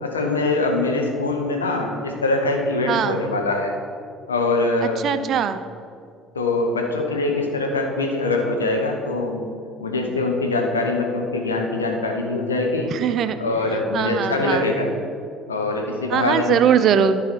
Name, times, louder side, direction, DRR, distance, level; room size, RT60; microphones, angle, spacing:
voice 1, 0.0-3.7 4.3-5.3 6.3-9.4 9.8-12.9 13.4-14.9 15.5-16.7, left 2 dB, 80° left, 2 dB, 1.0 m, -23 dB
voice 2, 2.9-3.2 5.0-5.6 12.9-13.4 13.9-14.7 16.1-17.2, right 8 dB, 50° right, 11 dB, 0.5 m, -20 dB
13.0 x 4.9 x 4.2 m, 2.3 s
figure-of-eight pair, 55°, 0 cm